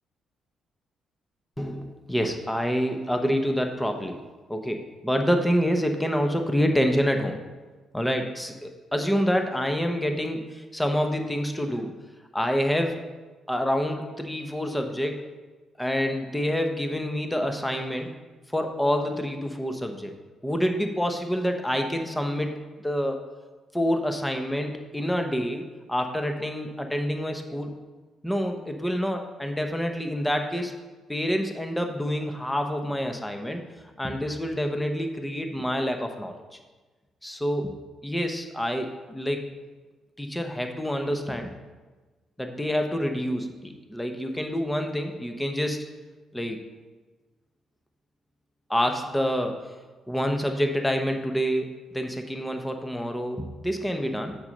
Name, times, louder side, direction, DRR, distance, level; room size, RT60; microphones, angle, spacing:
voice 1, 1.6-4.2 4.5-7.4 7.9-11.9 12.3-13.0 13.5-15.2 15.8-18.1 18.5-20.1 20.4-23.2 23.7-27.7 28.2-30.7 31.1-33.6 34.0-36.3 37.2-37.8 38.0-39.4 40.2-41.5 42.4-45.8 46.3-46.6 48.7-49.7 50.1-54.4, equal, 10° left, 5 dB, 0.9 m, -27 dB
7.1 x 5.3 x 6.4 m, 1.3 s
cardioid pair, 90°, 0 cm